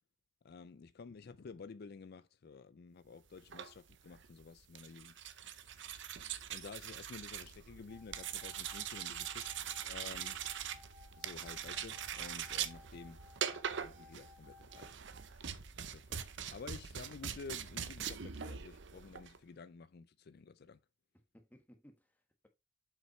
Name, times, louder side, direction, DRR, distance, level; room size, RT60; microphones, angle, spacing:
voice 1, 0.4-5.9 6.5-9.5 9.8-10.4 11.2-15.0 15.3-16.2 16.5-20.8, left 4 dB, 50° left, 0.4 m, -52 dB
sound 1, 3.4-19.4, right 8 dB, 60° right, 0.7 m, -43 dB
sound 2, 7.9-14.9, left 4 dB, 40° right, 1.9 m, -60 dB
voice 2, 21.1-22.5, equal, 10° left, 1.3 m, -62 dB
7.5 x 5.7 x 3.1 m
head